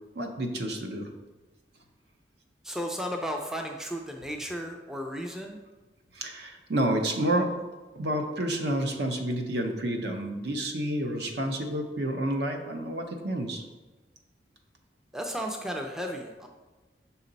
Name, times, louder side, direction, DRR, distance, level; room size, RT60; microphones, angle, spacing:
voice 1, 0.1-1.1 6.1-7.5 7.9-13.6, right 1 dB, 70° right, 4 dB, 0.7 m, -29 dB
voice 2, 2.6-5.6 15.1-16.5, equal, 5° right, 3 dB, 0.4 m, -34 dB
5.8 x 4.2 x 3.9 m, 1.2 s
head